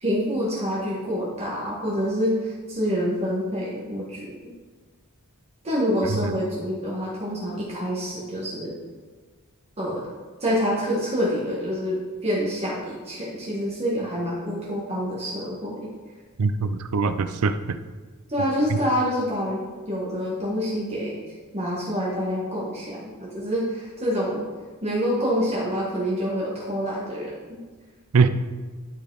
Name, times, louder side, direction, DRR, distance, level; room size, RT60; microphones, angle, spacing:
voice 1, 0.0-4.3 5.6-8.7 9.8-10.0 10.4-15.9 18.3-21.2 21.5-24.4 24.8-27.6, equal, 30° right, -7 dB, 1.7 m, -27 dB
voice 2, 16.4-17.8 18.7-18.8 28.1-28.3, right 4 dB, 70° right, 11 dB, 0.5 m, -22 dB
11.5 x 5.1 x 4.0 m, 1.4 s
head